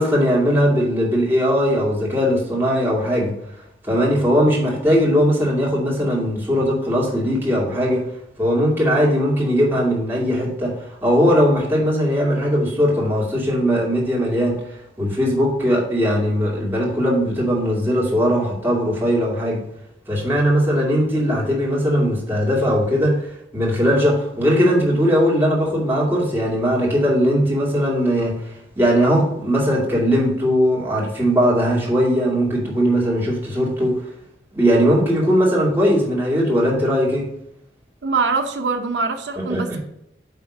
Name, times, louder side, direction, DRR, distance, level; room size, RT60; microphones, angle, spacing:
voice 1, 0.0-3.3 3.8-8.1 8.4-14.6 15.0-19.6 20.1-34.0 34.5-37.3 39.4-39.8, equal, 15° right, -5 dB, 2.5 m, -19 dB
voice 2, 38.0-39.8, right 4 dB, 85° right, 6 dB, 0.7 m, -23 dB
9.3 x 3.6 x 6.3 m, 0.78 s
head